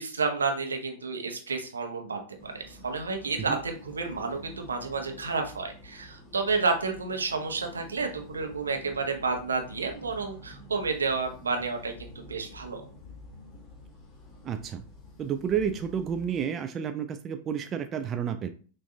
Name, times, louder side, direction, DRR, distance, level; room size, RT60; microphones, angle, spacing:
voice 1, 0.0-12.8, right 4 dB, 75° right, 4 dB, 0.8 m, -30 dB
sound 1, 2.4-16.4, left 1 dB, 20° left, 1.3 m, -49 dB
voice 2, 14.4-14.8 15.2-18.5, right 8 dB, 30° right, 7 dB, 0.3 m, -30 dB
5.7 x 2.6 x 2.6 m, 0.39 s
figure-of-eight pair, 90°, 0 cm